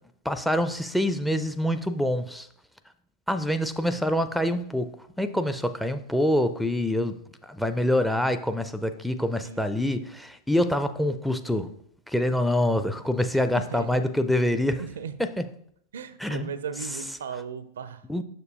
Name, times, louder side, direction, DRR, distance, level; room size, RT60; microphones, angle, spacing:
voice 1, 0.3-2.5 3.3-4.9 5.2-11.7 12.1-14.8 15.2-15.4 16.2-16.5 18.1-18.2, left 1 dB, ahead, 12 dB, 0.4 m, -26 dB
voice 2, 9.4-9.9 13.5-14.1 14.8-15.1 15.9-18.1, right 7 dB, 65° right, 14 dB, 0.4 m, -37 dB
6.6 x 6.5 x 2.8 m, 0.66 s
figure-of-eight pair, 90°, 0 cm